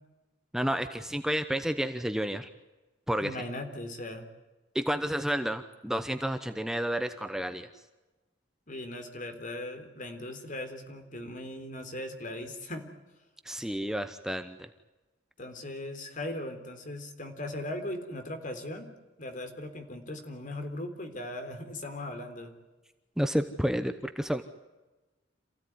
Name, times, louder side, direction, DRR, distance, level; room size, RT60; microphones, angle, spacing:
voice 1, 0.5-2.5 3.1-3.4 4.7-7.7 13.4-14.7 23.2-24.4, equal, 5° right, 9 dB, 0.9 m, -30 dB
voice 2, 3.2-4.3 8.7-12.8 15.4-18.9 19.2-22.5, left 1 dB, 45° left, 6 dB, 3.7 m, -38 dB
27.5 x 16.5 x 9.6 m, 1.1 s
head